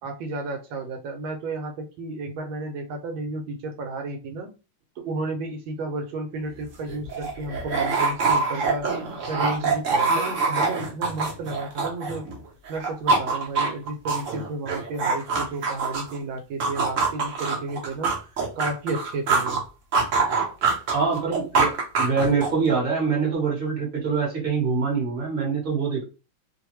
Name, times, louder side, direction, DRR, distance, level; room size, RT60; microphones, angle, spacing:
voice 1, 0.0-4.5 5.0-8.9 9.3-12.2 12.7-18.1 18.6-19.6, right 2 dB, 80° right, 5 dB, 1.3 m, -32 dB
sound 1, 6.5-6.6 6.9-12.4 12.7-16.2 16.6-19.6 19.9-22.7, right 4 dB, 60° right, 0.8 m, -24 dB
voice 2, 20.9-26.0, right 5 dB, 35° right, -2 dB, 1.1 m, -24 dB
3.2 x 2.1 x 3.0 m, 0.32 s
omnidirectional pair, 2.2 m